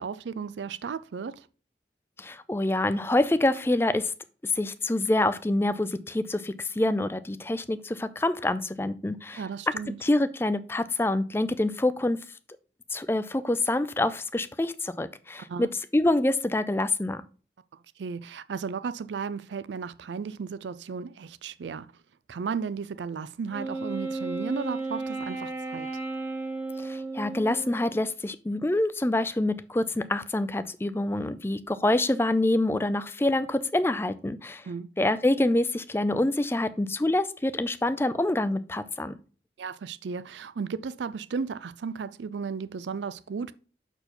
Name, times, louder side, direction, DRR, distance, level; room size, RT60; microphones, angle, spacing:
voice 1, 0.0-1.5 9.3-10.0 15.5-15.7 18.0-21.9 22.3-25.9 34.7-34.9 39.6-43.5, right 5 dB, 85° right, 0.4 m, -34 dB
voice 2, 2.2-4.1 4.4-9.4 10.0-12.2 12.9-15.7 15.9-17.2 26.8-34.6 35.0-39.1, left 1 dB, 15° left, 0.4 m, -26 dB
Wind instrument woodwind instrument, 23.5-28.1, right 3 dB, 15° right, 1.1 m, -34 dB
6.7 x 4.5 x 4.3 m
head